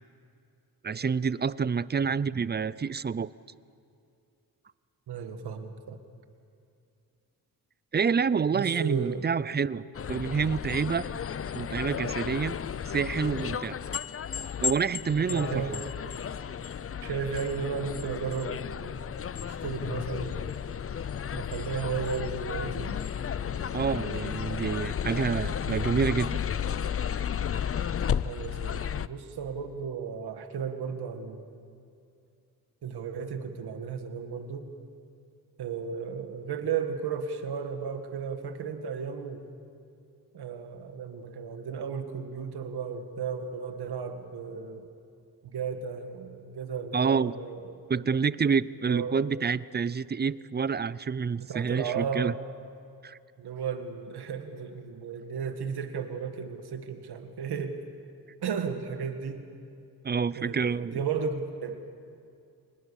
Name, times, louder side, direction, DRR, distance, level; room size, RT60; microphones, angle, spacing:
voice 1, 0.8-3.3 7.9-9.8 10.1-11.1 11.5-12.6 12.9-13.8 14.6-15.6 23.7-26.4 46.9-47.3 47.9-52.3 53.0-53.2 60.0-61.0, right 6 dB, 25° right, 19 dB, 0.5 m, -28 dB
voice 2, 5.1-6.0 8.5-9.3 15.3-15.8 17.0-18.9 19.4-20.6 21.3-23.0 28.2-31.4 32.8-34.7 35.6-39.4 40.3-44.9 45.4-47.8 48.8-49.2 51.4-52.4 53.4-57.8 58.4-59.5 60.4-61.9, right 6 dB, 85° right, 7 dB, 1.9 m, -34 dB
sound 1, 9.9-29.1, left 8 dB, 35° left, 0.6 m, -33 dB
Percussion / Church bell, 22.8-27.0, right 2 dB, 55° left, 7.1 m, -61 dB
25.0 x 20.5 x 7.1 m, 2.5 s
cardioid pair, 90°, 38 cm